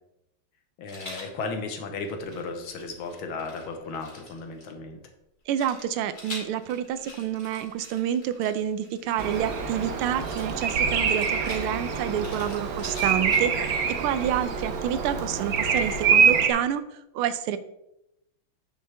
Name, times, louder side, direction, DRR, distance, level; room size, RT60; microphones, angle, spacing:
voice 1, 0.8-5.0, left 3 dB, 75° left, 5 dB, 1.8 m, -35 dB
Rattle, 0.9-1.3 2.0-4.6 5.5-9.6 10.2-13.7, left 1 dB, 25° left, 2.3 m, -45 dB
voice 2, 5.5-16.8 17.1-17.6, right 10 dB, 85° right, 12 dB, 1.5 m, -28 dB
Bird vocalization bird call bird song, 9.2-16.5, right 6 dB, 55° right, 1.1 m, -25 dB
9.3 x 6.6 x 3.4 m, 0.84 s
omnidirectional pair, 2.3 m